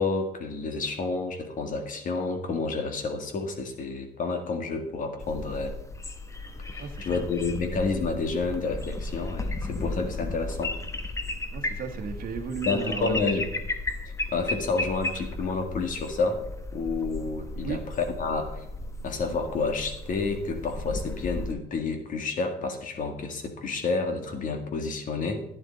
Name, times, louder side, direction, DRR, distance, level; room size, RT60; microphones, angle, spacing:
voice 1, 0.0-5.7 6.7-10.8 12.7-13.5 14.1-16.4 16.7-18.7 19.0-25.4, left 4 dB, 50° left, 5 dB, 1.9 m, -29 dB
sound 1, 5.2-21.5, left 2 dB, 20° left, 1.0 m, -35 dB
voice 2, 6.8-7.2 11.5-13.1 17.6-17.8, right 6 dB, 60° right, 5 dB, 1.3 m, -35 dB
11.0 x 10.5 x 4.0 m, 0.82 s
cardioid pair, 110°, 17 cm